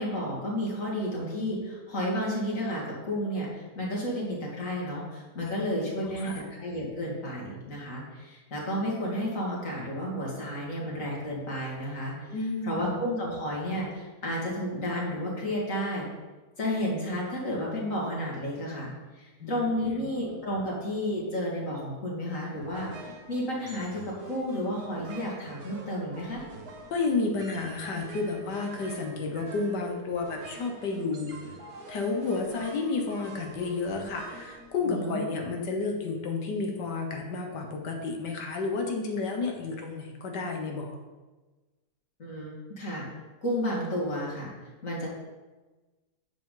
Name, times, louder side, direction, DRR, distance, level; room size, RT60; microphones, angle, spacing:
voice 1, 0.0-12.3 12.6-16.1 16.6-26.4 34.9-35.2 42.2-43.1 43.4-44.5 44.8-45.1, equal, 50° left, -4 dB, 2.7 m, -32 dB
voice 2, 6.0-6.4 12.3-12.9 19.4-20.1 26.9-31.3 31.9-41.0, left 3 dB, 85° left, 2 dB, 1.8 m, -31 dB
sound 1, 22.6-35.3, right 2 dB, 65° right, 1.6 m, -46 dB
10.0 x 7.4 x 3.9 m, 1.2 s
omnidirectional pair, 1.8 m